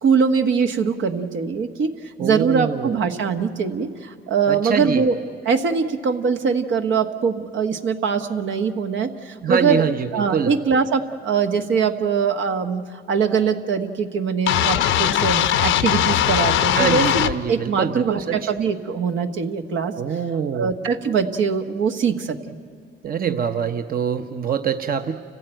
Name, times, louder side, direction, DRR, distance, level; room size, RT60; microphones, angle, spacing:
voice 1, 0.0-1.9 2.2-5.1 5.4-9.8 10.1-19.9 20.5-22.6 23.3-23.4, right 6 dB, 75° right, 6 dB, 1.5 m, -22 dB
voice 2, 2.2-2.9 4.5-5.0 9.4-10.6 16.7-18.5 20.0-20.7 23.0-25.1, right 7 dB, 45° right, 7 dB, 1.0 m, -24 dB
sound 1, 14.5-17.3, left 11 dB, 85° left, 0.8 m, -19 dB
29.5 x 15.5 x 9.0 m, 2.3 s
cardioid pair, 90°, 20 cm